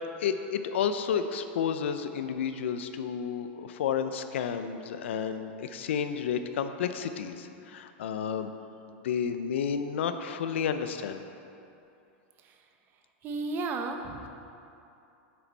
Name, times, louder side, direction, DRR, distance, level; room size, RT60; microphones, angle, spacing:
voice 1, 0.2-8.5 8.9-11.2, left 7 dB, 85° left, 9 dB, 0.6 m, -31 dB
voice 2, 13.2-14.3, right 3 dB, 35° right, 4 dB, 0.8 m, -33 dB
9.2 x 7.8 x 4.1 m, 2.7 s
supercardioid pair, 140°, 6 cm